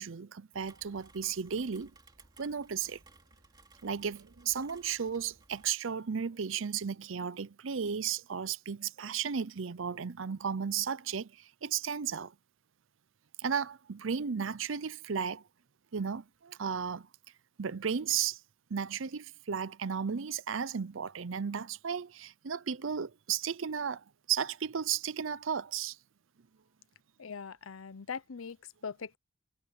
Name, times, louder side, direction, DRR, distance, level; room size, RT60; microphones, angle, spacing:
voice 1, 0.0-1.9 2.4-3.0 3.8-12.3 13.4-15.4 15.9-17.1 17.6-18.4 18.7-26.0, right 7 dB, 70° right, 0.6 m, -34 dB
Rain, 0.5-5.7, right 3 dB, 20° right, 2.8 m, -60 dB
voice 2, 27.2-28.6 28.8-29.2, left 6 dB, 85° left, 0.7 m, -41 dB
head